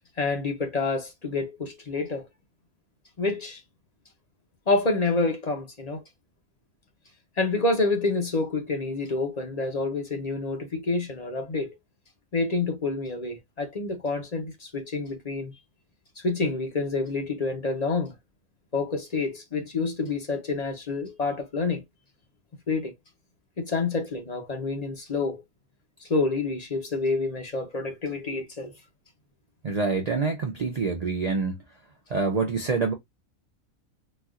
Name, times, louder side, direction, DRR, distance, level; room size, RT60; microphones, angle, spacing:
voice 1, 0.2-2.3 3.2-3.6 4.7-6.0 7.4-11.7 12.3-15.5 16.2-18.1 18.7-21.8 22.7-22.9 23.6-25.4 26.0-28.7, left 3 dB, 40° left, 0.6 m, -28 dB
voice 2, 29.6-31.6 32.1-32.9, right 4 dB, 75° right, 0.3 m, -26 dB
4.1 x 2.3 x 2.4 m
omnidirectional pair, 1.5 m